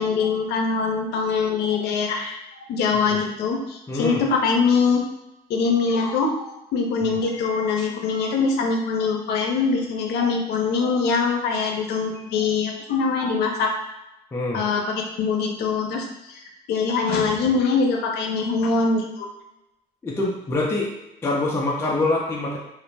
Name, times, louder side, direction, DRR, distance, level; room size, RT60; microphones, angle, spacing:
voice 1, 0.0-5.0 5.5-13.7 14.5-14.8 15.2-16.4 16.7-19.3, left 4 dB, 75° left, 2 dB, 0.6 m, -23 dB
voice 2, 3.9-4.2 7.0-7.2 14.3-14.6 20.0-20.9 21.2-22.6, left 2 dB, 15° left, -3 dB, 0.4 m, -25 dB
2.5 x 2.0 x 3.2 m, 0.93 s
cardioid pair, 110°, 17 cm